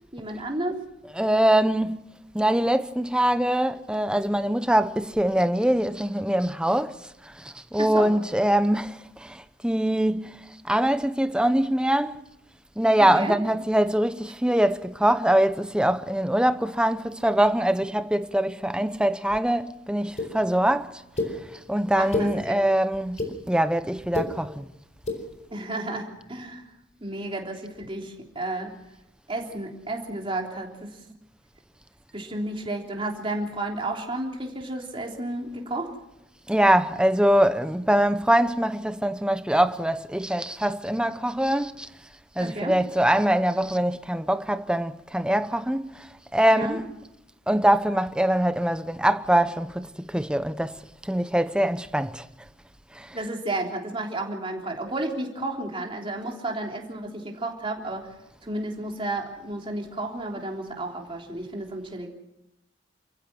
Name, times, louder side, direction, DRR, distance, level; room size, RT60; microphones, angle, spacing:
voice 1, 0.1-0.8 7.8-8.1 13.0-13.3 22.0-22.6 25.5-26.6 27.0-28.7 29.3-30.9 32.1-35.9 42.4-42.8 46.5-46.8 53.1-58.1 58.4-62.1, right 2 dB, 30° right, 3.5 m, -32 dB
voice 2, 1.0-12.2 12.8-21.0 21.7-23.2 23.5-24.7 36.5-41.9 42.4-46.1 46.3-47.0 47.5-52.3 52.9-53.2, right 1 dB, 5° right, 0.8 m, -23 dB
sound 1, 20.2-20.3 21.2-21.3 21.9-22.3 22.9-23.3 24.0-24.3 24.9-25.2, left 3 dB, 40° left, 4.6 m, -27 dB
29.0 x 15.5 x 6.1 m
head